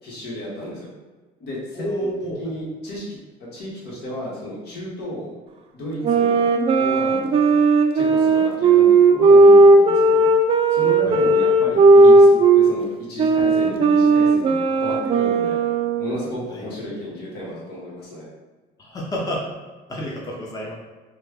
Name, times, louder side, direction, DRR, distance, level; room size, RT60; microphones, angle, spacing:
voice 1, 0.0-0.9 1.4-2.1 2.4-3.2 3.5-5.3 5.7-6.4 6.7-7.6 7.9-10.3 10.7-15.6 16.0-18.3, left 1 dB, 75° left, -5 dB, 1.2 m, -33 dB
voice 2, 1.8-2.4 11.0-11.2 16.5-16.7 18.8-19.4 19.9-20.7, equal, 20° left, -3 dB, 0.7 m, -29 dB
sound 1, 6.0-12.7 13.2-16.2, right 3 dB, 35° right, 0.3 m, -15 dB
3.1 x 2.2 x 3.4 m, 1.3 s
cardioid pair, 110°, 17 cm